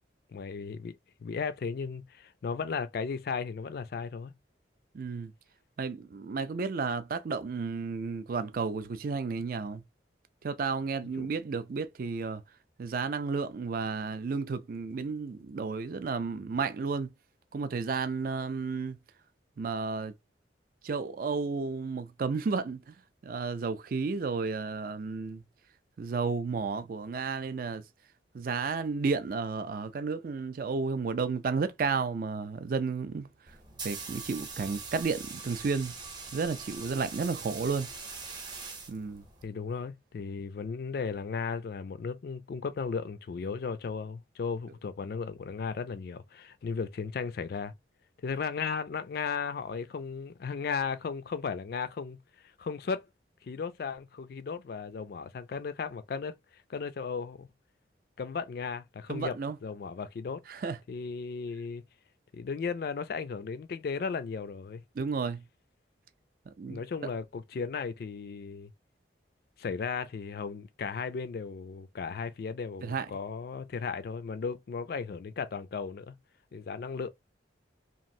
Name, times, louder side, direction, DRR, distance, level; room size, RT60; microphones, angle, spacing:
voice 1, 0.3-4.3 11.2-11.3 39.4-47.7 48.2-53.1 53.4-57.5 58.2-60.4 60.9-61.8 62.3-64.8 66.7-68.7 69.6-76.2 76.5-77.1, left 5 dB, 55° left, 0.3 m, -35 dB
voice 2, 4.9-5.3 5.8-9.8 10.4-12.4 12.8-17.1 17.5-19.0 19.6-20.1 20.8-22.9 23.2-25.4 26.0-27.8 28.3-33.3 33.8-35.9 36.3-37.9 38.9-39.2 59.1-59.6 60.5-60.8 65.0-65.4 66.6-66.8 72.8-73.1, right 4 dB, 50° right, 0.4 m, -32 dB
sound 1, 33.5-39.5, right 4 dB, 25° right, 0.7 m, -42 dB
3.0 x 2.4 x 2.6 m
head